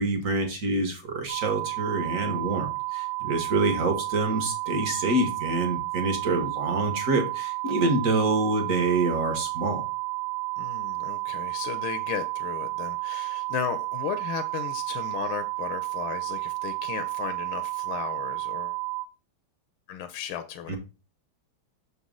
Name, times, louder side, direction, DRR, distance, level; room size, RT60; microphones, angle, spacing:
voice 1, 0.0-9.8 20.7-20.8, right 2 dB, 45° right, 1.3 m, -26 dB
sound 1, 1.3-19.1, right 25 dB, 85° right, 0.8 m, -32 dB
voice 2, 10.6-18.8 19.9-20.8, left 10 dB, 80° left, 1.4 m, -35 dB
6.6 x 4.1 x 3.7 m
omnidirectional pair, 2.3 m